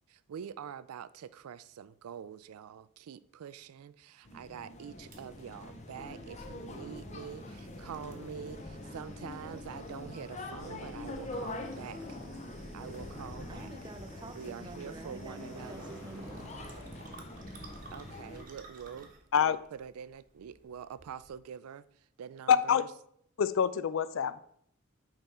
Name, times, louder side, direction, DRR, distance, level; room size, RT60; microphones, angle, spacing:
voice 1, 0.1-12.2 12.7-13.7 14.3-15.9 17.9-19.1 19.4-21.9 22.2-22.9, right 8 dB, 85° right, 0.4 m, -45 dB
sound 1, 4.2-18.4, left 2 dB, 30° left, 0.7 m, -44 dB
sound 2, 5.1-21.4, right 2 dB, 35° right, 1.0 m, -53 dB
voice 2, 13.5-16.5, right 2 dB, 20° right, 0.5 m, -47 dB
sound 3, 15.2-17.9, left 1 dB, 15° left, 3.2 m, -52 dB
voice 3, 22.5-22.8 23.4-24.4, left 7 dB, 65° left, 0.3 m, -26 dB
9.0 x 3.6 x 4.2 m
head